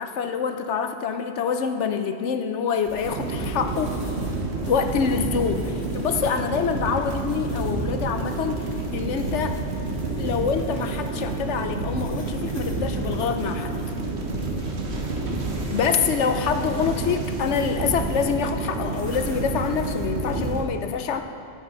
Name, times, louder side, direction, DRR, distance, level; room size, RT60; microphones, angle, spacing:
voice 1, 0.0-4.0 4.7-8.6 8.9-9.6 10.2-13.7 15.7-21.2, left 6 dB, 70° left, 7 dB, 0.9 m, -26 dB
sound 1, 2.8-20.5, left 2 dB, 55° left, 1.9 m, -43 dB
sound 2, 3.0-20.6, right 3 dB, 60° right, 1.4 m, -29 dB
12.5 x 9.6 x 3.9 m, 2.3 s
omnidirectional pair, 1.3 m